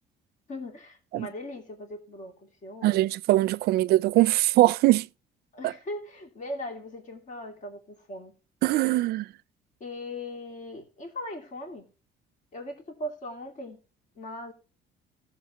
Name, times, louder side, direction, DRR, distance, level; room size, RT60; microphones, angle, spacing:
voice 1, 0.5-3.0 5.5-8.3 9.8-11.9 12.5-13.8 14.2-14.5, left 1 dB, 45° left, 2.8 m, -39 dB
voice 2, 2.8-5.1 8.6-9.3, right 16 dB, 70° right, 0.4 m, -22 dB
16.5 x 7.1 x 3.0 m
cardioid pair, 110°, 17 cm